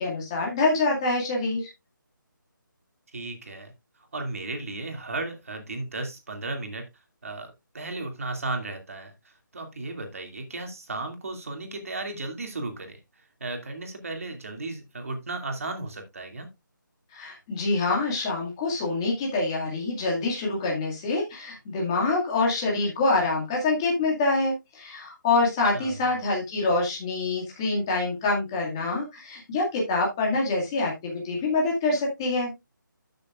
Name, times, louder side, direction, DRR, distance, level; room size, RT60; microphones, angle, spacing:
voice 1, 0.0-1.7 17.1-32.5, left 3 dB, 10° left, 2.1 m, -26 dB
voice 2, 3.1-3.7 4.1-6.8 7.2-13.0 13.4-16.5 25.7-26.1, right 2 dB, 40° right, 2.4 m, -35 dB
13.0 x 6.7 x 2.4 m
hypercardioid pair, 180°, 11 cm